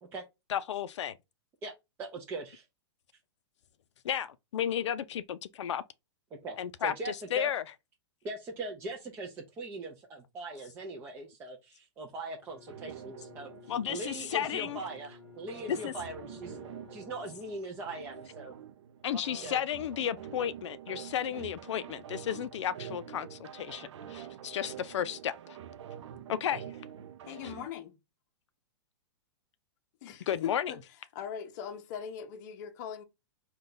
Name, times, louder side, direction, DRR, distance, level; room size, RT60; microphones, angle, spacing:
voice 1, 0.5-1.1 4.0-5.8 6.6-7.6 13.7-14.8 15.7-15.9 19.0-25.6 26.3-26.6 30.3-30.7, left 9 dB, 90° left, 0.4 m, -33 dB
voice 2, 2.0-2.6 6.3-7.5 8.2-16.6 16.9-18.5 19.1-19.6 21.3-21.4, right 2 dB, 15° right, 0.4 m, -41 dB
Bowed string instrument, 12.4-17.8, left 8 dB, 10° left, 0.9 m, -54 dB
sound 1, 12.7-27.7, right 10 dB, 85° right, 0.5 m, -47 dB
voice 3, 27.3-27.9 30.0-30.8 31.1-33.0, left 8 dB, 40° left, 0.6 m, -40 dB
3.8 x 2.3 x 3.7 m
hypercardioid pair, 160°, 15 cm